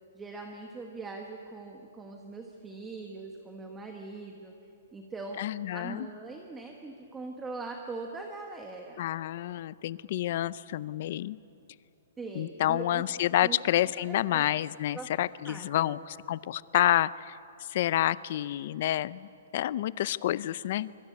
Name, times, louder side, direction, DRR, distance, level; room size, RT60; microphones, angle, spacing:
voice 1, 0.1-4.5 4.9-5.4 5.7-9.0 12.2-13.0 13.4-13.6 14.0-14.4 14.9-15.1 15.4-16.0, right 3 dB, 5° right, 2 dB, 1.1 m, -41 dB
voice 2, 5.4-6.1 9.0-11.4 12.4-17.3 17.7-20.9, left 13 dB, 35° left, 19 dB, 0.5 m, -29 dB
25.0 x 23.0 x 8.5 m, 2.9 s
hypercardioid pair, 180°, 0 cm